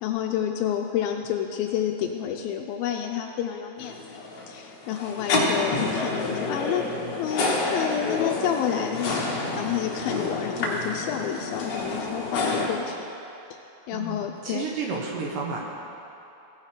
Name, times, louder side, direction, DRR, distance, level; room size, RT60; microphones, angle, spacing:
voice 1, 0.0-6.9 7.2-13.1 13.5-13.6 13.9-14.7, left 9 dB, 80° left, 3 dB, 2.2 m, -29 dB
sound 1, 3.8-12.7, left 3 dB, 60° left, 1.8 m, -28 dB
voice 2, 13.9-15.6, right 4 dB, 70° right, -1 dB, 2.2 m, -31 dB
16.5 x 5.8 x 4.8 m, 2.9 s
omnidirectional pair, 4.5 m